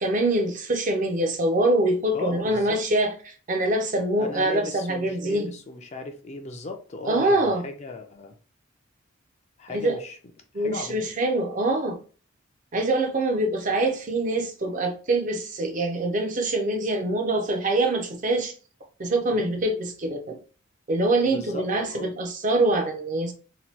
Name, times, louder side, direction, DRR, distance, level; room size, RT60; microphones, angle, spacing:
voice 1, 0.0-3.1 3.5-5.4 7.0-7.6 9.7-10.0 10.5-12.0 12.7-18.5 19.0-20.4 20.9-23.3, right 2 dB, 35° right, 0.5 m, -24 dB
voice 2, 2.1-2.8 4.2-8.4 9.6-10.2 10.5-11.0 19.3-19.6 21.2-22.1, left 3 dB, 30° left, 0.4 m, -37 dB
2.8 x 2.2 x 3.1 m
head